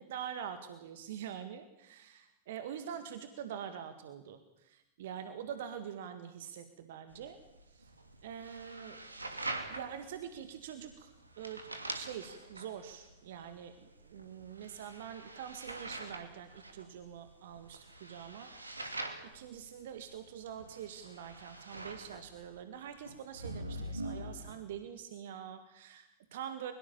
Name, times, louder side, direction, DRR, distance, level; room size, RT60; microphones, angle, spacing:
voice 1, 0.0-7.4 7.7-7.9 8.2-9.2 9.7-11.6 11.9-18.5 19.3-26.7, right 9 dB, 55° right, 9 dB, 2.0 m, -45 dB
sound 1, 7.1-24.5, right 2 dB, 80° right, 2.9 m, -45 dB
23.0 x 22.5 x 7.2 m, 0.91 s
figure-of-eight pair, 90°, 0 cm